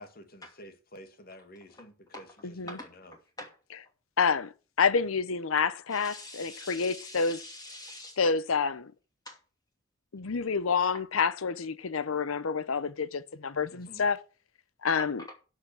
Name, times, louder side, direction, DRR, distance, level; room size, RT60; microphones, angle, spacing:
voice 1, 0.0-2.3 2.6-3.1 13.7-14.1, equal, 45° left, 2.1 m, -50 dB
voice 2, 2.7-3.6 5.9-8.2 9.2-9.4 10.9-11.0 15.0-15.3, left 1 dB, 20° left, 2.6 m, -45 dB
voice 3, 4.2-4.5 4.8-7.4 8.2-8.9 10.1-14.2 14.8-15.2, left 5 dB, 75° left, 0.7 m, -28 dB
12.0 x 5.8 x 7.2 m
head